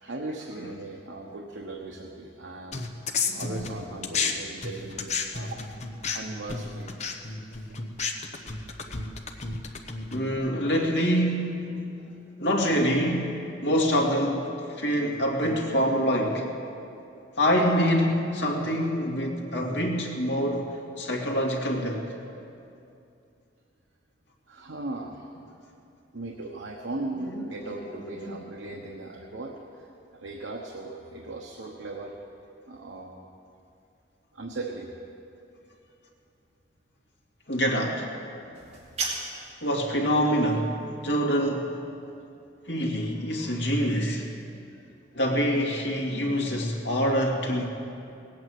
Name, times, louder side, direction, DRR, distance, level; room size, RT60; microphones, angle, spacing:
voice 1, 0.0-5.6 6.1-6.9 12.6-12.7 24.5-25.3 26.1-29.9 30.1-32.2 32.7-33.2 34.3-34.9 39.9-40.0, right 2 dB, 90° right, 0 dB, 1.1 m, -38 dB
sound 1, 2.7-4.3 4.6-10.4, left 5 dB, 40° left, 1.0 m, -32 dB
voice 2, 3.2-3.7 4.1-4.3 10.1-11.8 12.4-13.4 13.6-16.5 17.4-20.7 21.0-22.1 27.3-27.9 28.2-28.4 37.5-38.1 39.6-41.8 42.7-44.3 45.1-47.7, equal, 75° left, 0 dB, 2.2 m, -26 dB
sound 2, 38.5-39.6, right 3 dB, 35° right, 2.7 m, -33 dB
18.5 x 8.6 x 7.7 m, 2.6 s
head